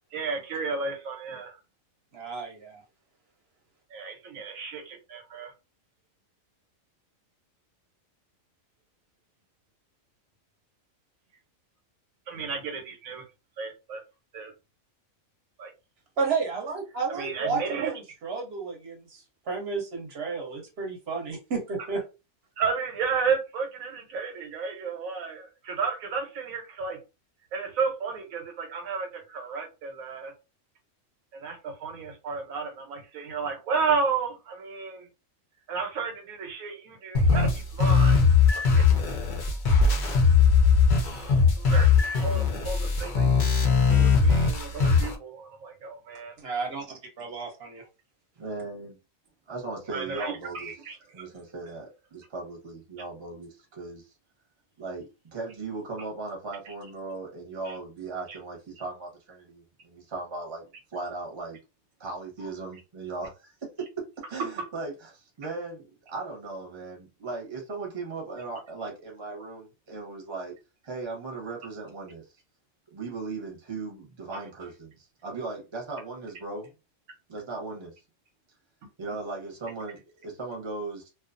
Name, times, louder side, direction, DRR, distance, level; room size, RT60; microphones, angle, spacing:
voice 1, 0.1-1.6 3.9-5.5 12.3-13.2 13.6-14.0 14.3-14.5 15.6-15.7 17.1-17.9 22.6-27.0 27.5-30.3 31.3-35.1 35.7-38.2 38.6-38.9 39.4-39.5 41.0-46.3 49.9-51.3 57.7-57.8 74.3-74.4, right 5 dB, 85° right, 1.2 m, -33 dB
voice 2, 2.1-2.8 16.2-18.0 18.2-22.0 46.4-46.8 47.2-47.9, right 4 dB, 55° right, 0.9 m, -32 dB
sound 1, 37.1-45.1, left 5 dB, 60° left, 0.5 m, -21 dB
voice 3, 48.4-49.0 49.5-50.7 51.1-54.1 54.8-55.0 55.3-61.6 62.0-70.5 70.8-72.3 72.9-76.7 77.3-77.9 79.0-81.1, right 3 dB, 25° right, 0.8 m, -37 dB
2.4 x 2.3 x 2.5 m
omnidirectional pair, 1.4 m